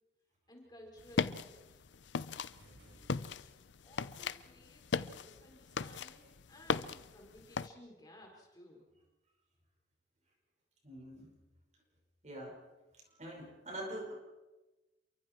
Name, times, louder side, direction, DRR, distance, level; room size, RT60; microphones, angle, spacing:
voice 1, 0.5-1.8 3.1-3.5 3.8-8.9, left 1 dB, 20° left, 0 dB, 4.7 m, -57 dB
sound 1, 1.0-7.7, left 5 dB, 80° left, 0.6 m, -38 dB
sound 2, 2.6-3.8, right 1 dB, 65° right, 4.5 m, -61 dB
voice 2, 10.8-11.3 12.2-12.5 13.2-14.1, right 1 dB, 40° right, 1 dB, 5.1 m, -44 dB
28.0 x 23.5 x 4.5 m, 1.1 s
head